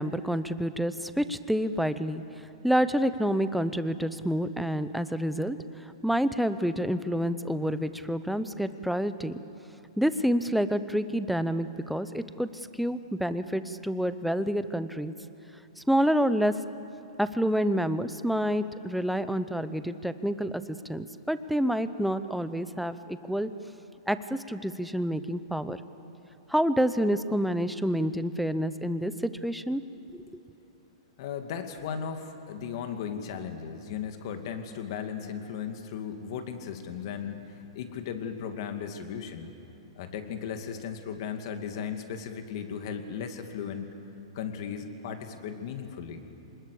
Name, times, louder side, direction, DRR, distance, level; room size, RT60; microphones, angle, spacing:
voice 1, 0.0-5.6 6.0-9.4 10.0-12.5 12.8-15.1 15.8-16.5 17.2-23.5 24.1-25.8 26.5-29.8 30.1-30.4, equal, ahead, 12 dB, 0.7 m, -28 dB
voice 2, 31.2-39.5 40.0-43.9 44.3-46.3, left 7 dB, 55° left, 6 dB, 2.3 m, -36 dB
25.0 x 20.5 x 8.5 m, 2.9 s
hypercardioid pair, 145°, 3 cm